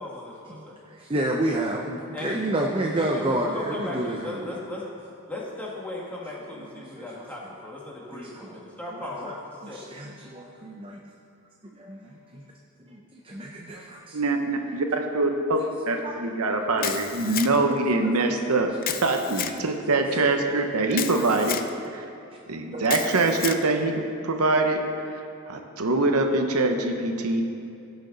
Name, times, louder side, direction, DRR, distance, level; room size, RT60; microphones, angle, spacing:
voice 1, 0.0-0.8 2.1-2.5 3.0-4.9 5.3-9.9, left 2 dB, 5° left, -4 dB, 1.8 m, -37 dB
voice 2, 0.9-4.4 6.9-7.1 8.1-8.5 9.0-9.4 9.7-10.5 11.8-12.0 13.1-14.2 16.0-16.1 16.8-16.9 17.2-17.3 17.6-17.8 19.5-19.6 21.1-21.4 22.7-22.9, right 1 dB, 25° right, 0 dB, 0.6 m, -29 dB
voice 3, 14.1-15.6 15.9-18.7 19.0-21.6 21.9-22.0 22.5-24.8 25.1-27.4, right 2 dB, 80° right, 4 dB, 0.9 m, -24 dB
Camera, 16.8-17.8 18.8-19.6 20.9-21.7 22.9-23.6, left 10 dB, 40° left, 0.5 m, -31 dB
16.5 x 6.4 x 4.0 m, 2.6 s
head